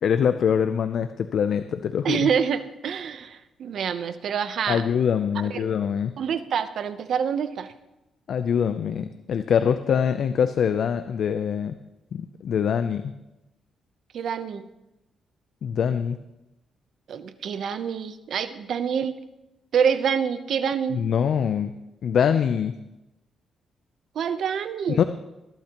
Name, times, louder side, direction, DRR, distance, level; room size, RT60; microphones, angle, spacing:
voice 1, 0.0-2.3 4.7-6.2 8.3-11.8 12.1-13.1 15.6-16.2 20.9-21.7 22.0-22.8 24.9-25.0, left 7 dB, 65° left, 10 dB, 0.5 m, -24 dB
voice 2, 2.0-4.8 5.5-5.7 6.2-7.7 14.1-14.7 17.1-19.2 19.7-21.0 24.1-25.0, right 7 dB, 65° right, 11 dB, 0.8 m, -26 dB
20.0 x 12.0 x 3.0 m, 0.97 s
cardioid pair, 115°, 0 cm